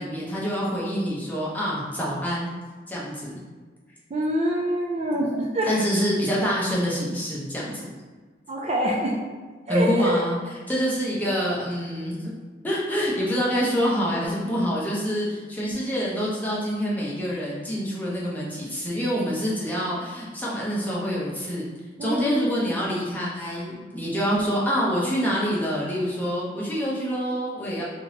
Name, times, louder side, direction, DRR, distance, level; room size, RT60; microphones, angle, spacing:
voice 1, 0.0-2.5 2.9-3.4 5.7-7.9 9.7-10.4 10.7-12.2 12.6-21.6 22.0-27.8, equal, 10° left, -6 dB, 0.7 m, -26 dB
voice 2, 4.1-5.9 8.5-9.2 9.7-10.2 22.0-22.7, equal, 35° right, -2 dB, 0.4 m, -25 dB
3.5 x 2.8 x 2.8 m, 1.4 s
head